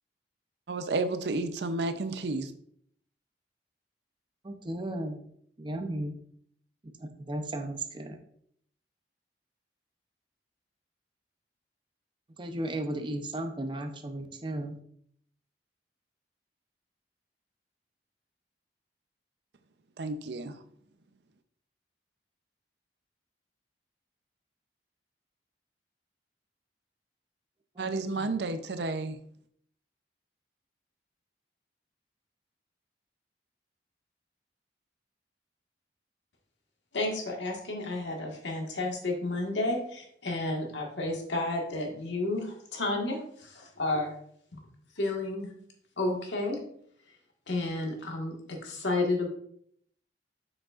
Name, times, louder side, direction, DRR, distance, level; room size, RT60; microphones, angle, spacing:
voice 1, 0.7-2.5 20.0-20.5 27.8-29.2, right 3 dB, 65° right, 10 dB, 0.6 m, -31 dB
voice 2, 4.4-5.2 5.6-6.2 6.8-8.2 12.4-14.8 27.8-28.3, right 1 dB, 25° right, 6 dB, 0.6 m, -35 dB
voice 3, 36.9-44.1 44.5-44.6 45.0-45.5 46.0-46.6 47.5-49.3, left 2 dB, 85° left, 1 dB, 1.6 m, -31 dB
7.5 x 6.3 x 2.4 m, 0.66 s
head